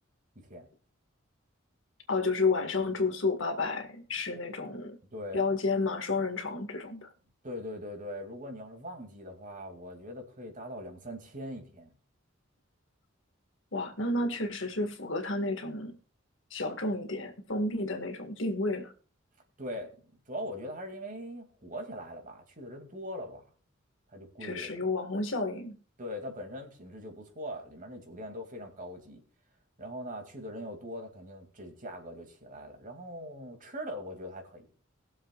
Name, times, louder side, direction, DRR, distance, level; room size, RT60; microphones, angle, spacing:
voice 1, 2.1-5.0 5.3-7.1 13.7-16.0 16.5-18.9 24.4-25.8, left 3 dB, 70° left, 1.9 m, -31 dB
voice 2, 5.1-5.4 7.4-11.9 19.6-19.9 20.3-23.4 24.1-24.8 26.0-29.2 29.8-34.6, equal, 45° right, 2.6 m, -41 dB
20.5 x 7.4 x 2.4 m
head